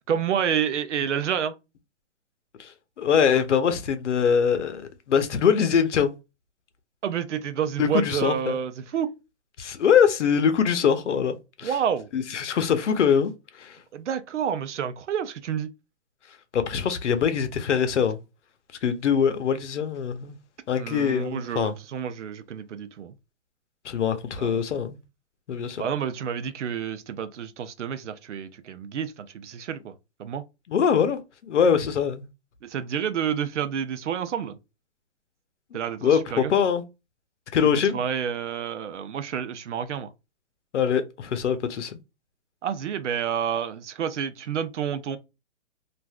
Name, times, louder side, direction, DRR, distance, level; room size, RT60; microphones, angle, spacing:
voice 1, 0.1-1.5 7.0-9.1 11.6-12.1 13.9-15.7 20.8-23.1 24.4-24.6 25.8-30.4 32.6-34.6 35.7-36.5 37.6-40.1 42.6-45.2, right 8 dB, 80° right, 0.6 m, -29 dB
voice 2, 3.0-4.8 5.1-6.1 7.8-8.6 9.6-11.7 12.1-13.3 13.6-13.8 16.5-18.2 18.8-20.4 20.7-21.7 23.8-25.0 25.5-25.8 30.7-32.2 35.7-36.8 37.5-38.0 40.7-42.0, left 7 dB, 80° left, 0.7 m, -23 dB
3.3 x 2.5 x 2.3 m
hypercardioid pair, 180°, 35 cm